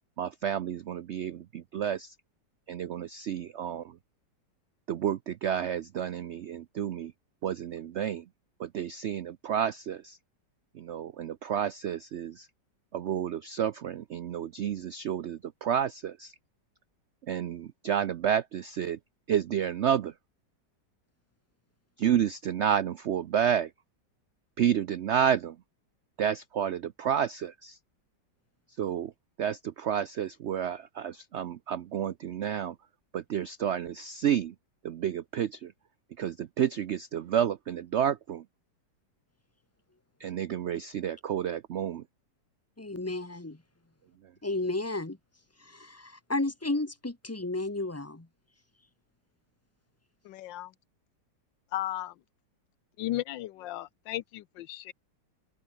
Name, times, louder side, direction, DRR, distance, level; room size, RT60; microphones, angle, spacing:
voice 1, 0.2-2.1 2.7-4.0 4.9-7.1 7.4-8.2 8.6-10.2 10.7-12.5 12.9-16.3 17.3-19.0 19.3-20.1 22.0-23.7 24.6-25.6 26.2-27.8 28.8-29.1 29.4-32.7 33.1-34.5 34.8-35.7 36.2-38.4 40.2-42.0, right 9 dB, 85° right, 0.6 m, -30 dB
voice 2, 42.8-43.6 44.4-45.2 45.6-48.3, left 2 dB, 10° left, 1.2 m, -33 dB
voice 3, 50.2-50.7 51.7-52.1 53.0-54.9, left 14 dB, 90° left, 1.4 m, -35 dB
open air
omnidirectional pair, 1.9 m